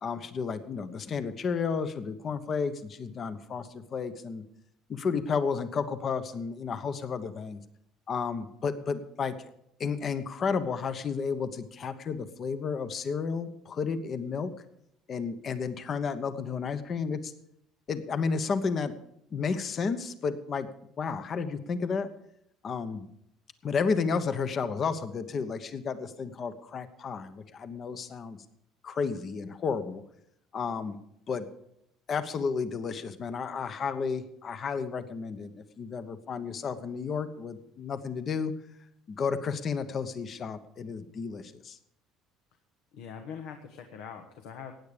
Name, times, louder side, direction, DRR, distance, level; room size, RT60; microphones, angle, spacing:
voice 1, 0.0-4.4 4.9-7.6 8.1-9.3 9.8-14.5 15.1-17.3 17.9-19.0 19.3-20.7 21.0-22.1 22.6-23.1 23.6-28.4 28.8-30.0 30.5-31.0 31.3-31.5 32.1-38.5 39.1-41.8, left 5 dB, 40° left, 11 dB, 1.1 m, -32 dB
voice 2, 42.9-44.7, left 7 dB, 75° left, 5 dB, 1.3 m, -42 dB
16.0 x 9.7 x 5.1 m, 0.76 s
supercardioid pair, 105°, 0 cm